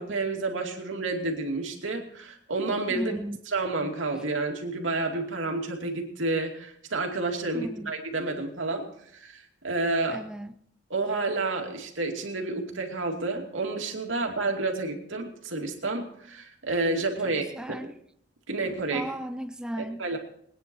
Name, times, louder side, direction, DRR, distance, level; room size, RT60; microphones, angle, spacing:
voice 1, 0.0-3.1 3.5-8.9 9.1-10.2 10.9-17.4 18.5-19.1 19.8-20.2, right 3 dB, 90° right, 2 dB, 2.6 m, -30 dB
voice 2, 2.9-3.4 7.5-7.9 10.1-10.5 17.5-18.0 18.9-20.0, right 1 dB, 5° right, 9 dB, 0.4 m, -35 dB
22.0 x 9.8 x 4.6 m, 0.68 s
head